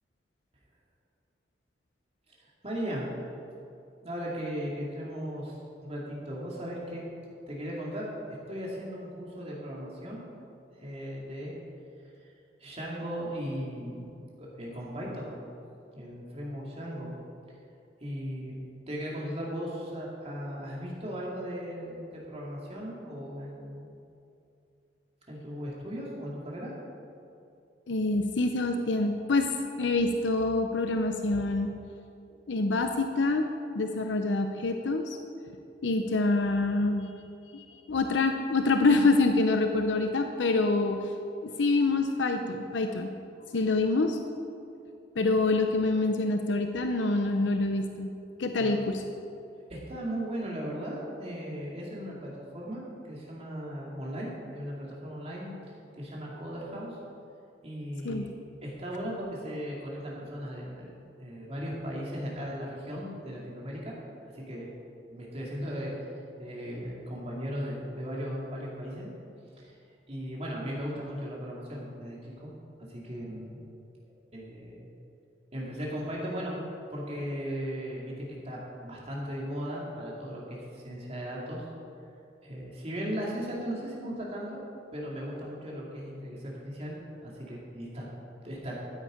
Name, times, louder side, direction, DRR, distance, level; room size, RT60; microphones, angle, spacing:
voice 1, 2.4-3.1 4.0-5.5 5.8-7.0 7.5-8.1 8.5-10.2 10.8-11.5 12.2-12.3 12.6-15.4 15.9-17.1 18.0-23.9 25.3-26.7 48.6-48.8 49.7-55.6 56.0-57.0 57.6-58.3 58.6-63.9 64.3-64.7 65.1-66.1 66.4-69.1 69.6-69.7 70.1-72.5 72.9-73.6 74.3-74.9 75.5-76.6 76.9-81.6 82.4-84.6 84.9-88.0 88.4-88.8, equal, 35° right, -4 dB, 2.6 m, -37 dB
voice 2, 27.9-29.5 29.8-31.7 32.5-33.5 33.7-35.2 35.8-37.1 37.5-41.0 41.4-43.1 43.5-44.2 45.2-48.1 48.4-49.0 58.0-58.3, left 3 dB, 85° left, 5 dB, 0.7 m, -26 dB
13.0 x 9.2 x 5.1 m, 2.6 s
head